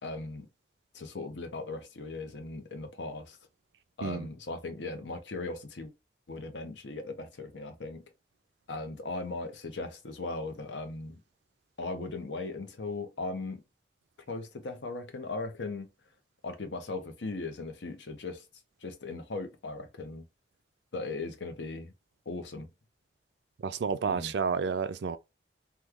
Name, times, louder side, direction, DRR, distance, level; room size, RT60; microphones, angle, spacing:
voice 1, 0.0-0.5 0.9-3.4 4.0-5.9 6.3-8.0 8.7-11.2 11.8-13.6 14.3-15.9 16.4-18.4 18.8-20.2 20.9-21.9 22.3-22.7 24.1-24.3, left 3 dB, 85° left, 0.8 m, -38 dB
voice 2, 23.6-25.2, right 5 dB, 70° right, 0.4 m, -30 dB
3.1 x 2.2 x 3.5 m
head